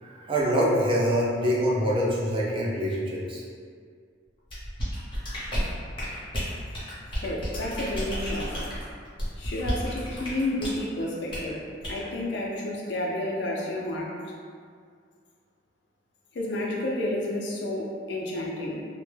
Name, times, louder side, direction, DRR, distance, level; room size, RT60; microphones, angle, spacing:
voice 1, 0.0-3.4, equal, 25° right, -5 dB, 0.4 m, -25 dB
sound 1, 4.5-10.8 11.3-11.5 11.8-12.0, equal, 25° left, 0.8 m, -32 dB
voice 2, 7.2-8.6 9.4-11.6 11.9-14.2 16.3-18.9, left 1 dB, 65° left, -3 dB, 0.4 m, -30 dB
2.1 x 2.1 x 3.2 m, 2.1 s
head